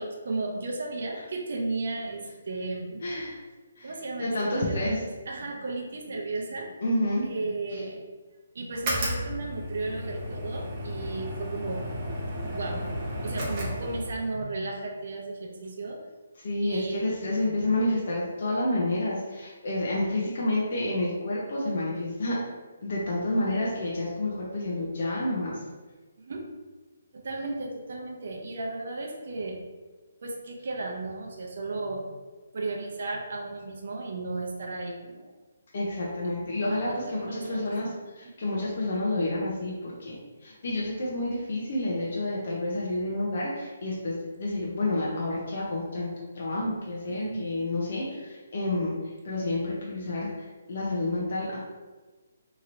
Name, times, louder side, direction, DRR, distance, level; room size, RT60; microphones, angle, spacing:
voice 1, 0.0-3.0 3.8-6.7 7.2-8.0 8.5-11.9 12.5-12.9 13.2-16.0 16.6-17.7 26.2-26.4 27.1-29.6 30.2-32.0 32.5-35.3 36.7-37.6 38.2-38.3 47.1-47.5, right 2 dB, 60° right, 0 dB, 0.6 m, -34 dB
voice 2, 3.0-3.4 3.8-3.9 4.2-5.1 6.8-7.3 16.4-22.4 22.8-25.6 35.7-46.1 46.3-48.9 49.2-50.3 50.7-51.6, left 1 dB, 55° left, -5 dB, 0.6 m, -29 dB
sound 1, 8.7-14.4, equal, 25° right, 0.8 m, -33 dB
3.0 x 2.8 x 2.6 m, 1.3 s
hypercardioid pair, 165°, 0 cm